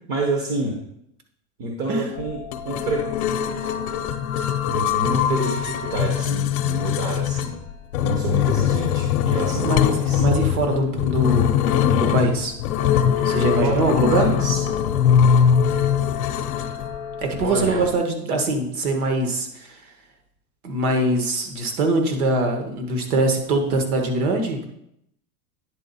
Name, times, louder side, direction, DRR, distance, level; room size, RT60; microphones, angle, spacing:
voice 1, 0.1-0.7 1.6-3.4 4.7-7.5 8.0-10.2 13.6-14.6 17.4-17.8, right 2 dB, 30° right, 1 dB, 0.8 m, -28 dB
sound 1, 2.2-17.9, left 8 dB, 60° left, 0.7 m, -22 dB
voice 2, 10.2-12.5 13.2-14.3 17.2-19.7 20.6-24.7, right 2 dB, 60° right, 4 dB, 1.6 m, -23 dB
9.7 x 4.0 x 4.1 m, 0.77 s
supercardioid pair, 165°, 49 cm